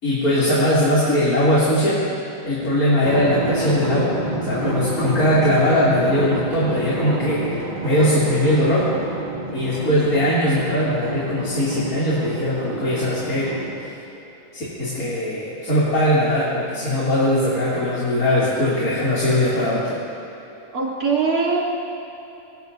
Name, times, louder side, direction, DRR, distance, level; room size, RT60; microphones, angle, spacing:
voice 1, 0.0-2.0 2.4-7.4 7.8-8.9 9.5-13.9 14.5-20.0, left 1 dB, 75° left, -9 dB, 3.4 m, -20 dB
Drum, 3.1-14.1, right 1 dB, 45° right, 2.9 m, -28 dB
voice 2, 20.7-21.6, right 4 dB, 80° right, -5 dB, 3.5 m, -21 dB
24.5 x 20.0 x 2.7 m, 3.0 s
omnidirectional pair, 1.6 m